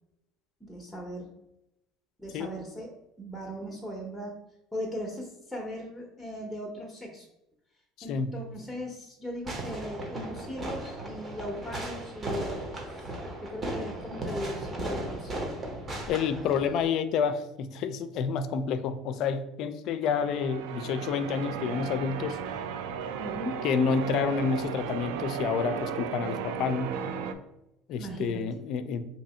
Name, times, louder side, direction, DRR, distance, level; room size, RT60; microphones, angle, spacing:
voice 1, 0.6-1.3 2.2-2.9 3.2-4.4 4.7-7.2 8.0-13.1 13.4-15.3 23.2-23.6 28.0-28.4, equal, 5° left, -2 dB, 0.7 m, -38 dB
Fireworks, 9.4-16.9, right 1 dB, 30° right, 0.9 m, -36 dB
voice 2, 16.1-22.4 23.6-27.0 27.9-29.1, left 6 dB, 60° left, 11 dB, 0.4 m, -29 dB
Church bell, 20.0-27.3, right 7 dB, 80° right, 0.3 m, -35 dB
2.8 x 2.6 x 4.2 m, 0.87 s
supercardioid pair, 95°, 0 cm